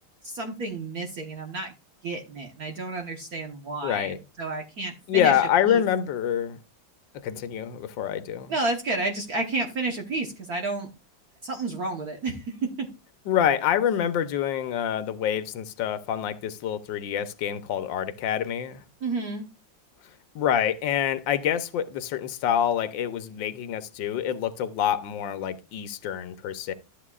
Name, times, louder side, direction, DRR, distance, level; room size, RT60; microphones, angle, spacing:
voice 1, 0.2-1.7 2.0-5.3 5.7-5.8 8.5-10.9 11.4-12.9 19.0-19.4, right 3 dB, 55° right, 1.5 m, -31 dB
voice 2, 3.8-4.2 5.1-6.6 7.2-8.5 13.3-18.8 20.3-26.7, left 9 dB, 70° left, 1.5 m, -26 dB
13.5 x 8.2 x 2.4 m
omnidirectional pair, 2.1 m